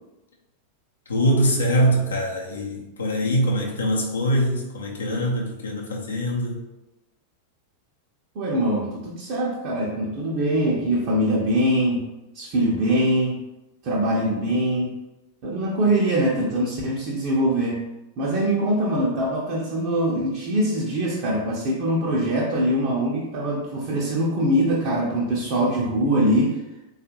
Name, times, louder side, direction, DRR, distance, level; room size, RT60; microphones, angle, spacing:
voice 1, 1.1-6.6, equal, 70° left, -1 dB, 0.6 m, -23 dB
voice 2, 8.3-12.1 12.3-13.4 13.8-14.9 15.4-17.8 18.2-26.6, right 1 dB, 45° right, -4 dB, 0.6 m, -23 dB
3.5 x 2.3 x 2.8 m, 0.99 s
figure-of-eight pair, 90°, 0 cm